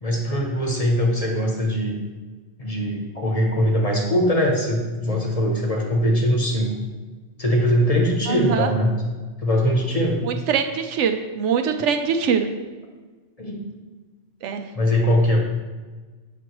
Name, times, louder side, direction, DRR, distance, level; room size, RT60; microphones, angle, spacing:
voice 1, 0.0-2.0 2.6-6.7 7.4-9.0 9.4-10.2 13.4-13.7 14.7-15.4, equal, 35° left, -1 dB, 1.0 m, -21 dB
voice 2, 8.3-8.7 10.2-12.5 14.4-14.7, right 7 dB, 80° right, 6 dB, 0.9 m, -23 dB
7.7 x 6.0 x 3.0 m, 1.3 s
omnidirectional pair, 1.2 m